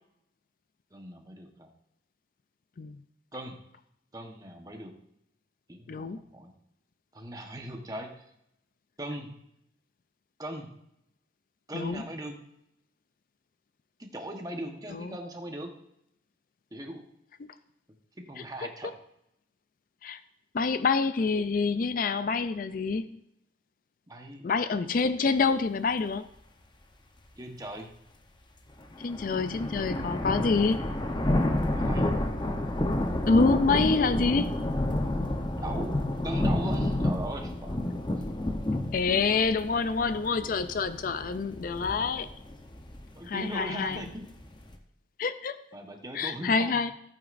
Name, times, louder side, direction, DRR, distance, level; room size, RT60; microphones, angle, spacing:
voice 1, 0.9-1.7 3.3-3.6 4.1-4.9 5.7-6.5 7.1-8.3 9.0-9.3 10.4-10.7 11.7-12.4 14.0-15.7 16.7-17.0 18.2-18.9 24.1-24.5 27.4-27.9 31.7-32.1 35.6-38.0 43.1-44.3 45.7-46.8, right 1 dB, 20° right, 3 dB, 1.1 m, -39 dB
voice 2, 5.9-6.2 11.7-12.0 14.9-15.2 20.0-20.2 20.5-23.1 24.4-26.2 29.0-30.8 33.3-34.5 38.9-42.3 43.3-44.0 45.2-45.6 46.1-46.9, left 4 dB, 50° left, 12 dB, 0.4 m, -27 dB
sound 1, 28.8-44.7, left 1 dB, 25° left, 0.8 m, -30 dB
14.5 x 8.8 x 2.6 m, 0.79 s
head